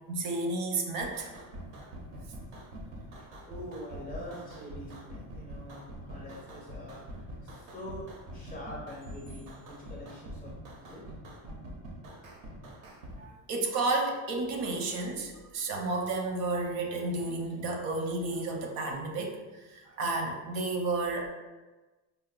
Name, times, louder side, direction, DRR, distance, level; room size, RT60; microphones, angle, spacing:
voice 1, 0.1-1.3 13.2-21.3, right 2 dB, 85° right, 2 dB, 0.7 m, -32 dB
sound 1, 1.0-13.2, equal, 45° right, 0.4 m, -45 dB
voice 2, 2.8-10.5 10.8-11.0, left 1 dB, 20° left, -6 dB, 0.4 m, -45 dB
4.2 x 2.0 x 2.3 m, 1.2 s
cardioid pair, 165°, 48 cm